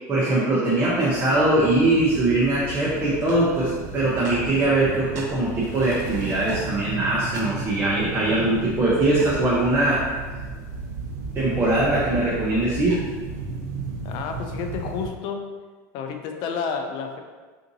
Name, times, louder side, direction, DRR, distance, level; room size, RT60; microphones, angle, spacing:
voice 1, 0.1-10.0 11.3-13.0, right 2 dB, 25° right, -7 dB, 0.7 m, -21 dB
sound 1, 0.6-15.1, right 3 dB, 90° right, 0.7 m, -34 dB
voice 2, 14.0-15.5 15.9-17.2, left 5 dB, 55° left, 5 dB, 0.4 m, -30 dB
3.7 x 2.7 x 2.6 m, 1.4 s
supercardioid pair, 115°, 9 cm